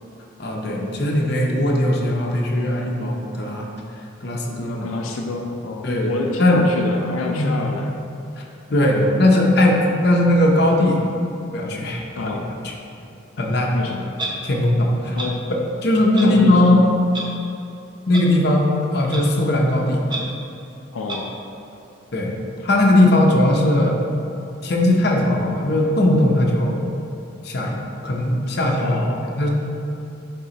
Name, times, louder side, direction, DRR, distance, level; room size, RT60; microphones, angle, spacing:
voice 1, 0.4-3.7 4.2-4.9 5.8-6.1 6.4-6.6 7.3-7.6 8.4-8.5 8.7-11.0 11.5-12.4 12.6-12.7 13.4-13.8 14.4-15.2 15.8-16.9 18.1-20.0 22.1-22.3 22.6-24.0 24.6-26.8 27.4-29.0 29.3-29.5, left 1 dB, 50° left, -1 dB, 0.7 m, -18 dB
voice 2, 4.8-8.0 12.2-12.5 13.7-14.2 15.1-15.5 16.2-16.9 20.9-21.4 28.8-29.3, left 3 dB, 90° left, 1 dB, 0.5 m, -28 dB
Clock, 14.2-14.3 15.2-15.3 16.1-16.3 17.1-17.2 18.1-18.2 19.1-19.2 20.1-20.2 21.1-21.2, right 3 dB, 20° right, 0.6 m, -28 dB
9.1 x 3.7 x 2.9 m, 2.8 s
head